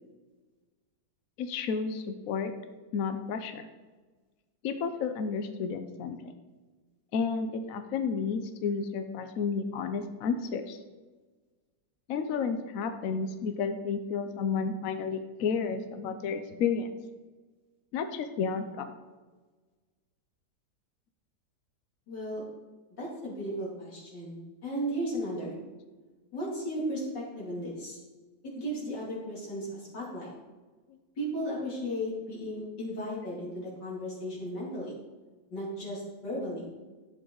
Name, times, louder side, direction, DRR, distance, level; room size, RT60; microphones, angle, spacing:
voice 1, 1.4-2.5 2.9-3.7 4.6-6.3 7.1-10.8 12.1-17.0 17.9-18.9, left 5 dB, 60° left, 8 dB, 1.0 m, -31 dB
voice 2, 22.1-22.4 23.0-25.6 26.3-28.0 28.4-30.3 31.2-35.0 35.5-36.7, equal, 80° left, -5 dB, 3.4 m, -35 dB
11.5 x 7.1 x 3.9 m, 1.3 s
omnidirectional pair, 1.8 m